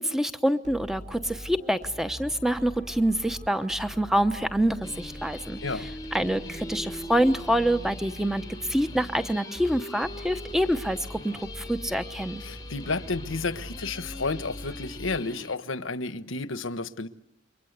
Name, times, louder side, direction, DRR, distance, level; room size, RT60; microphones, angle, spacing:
voice 1, 0.0-12.4, equal, ahead, 1.0 m, -26 dB
sound 1, 0.6-15.6, equal, 35° right, 2.6 m, -43 dB
sound 2, 4.8-15.6, left 2 dB, 20° left, 1.1 m, -42 dB
voice 2, 12.4-17.1, left 3 dB, 85° left, 1.2 m, -31 dB
29.5 x 24.0 x 8.2 m
head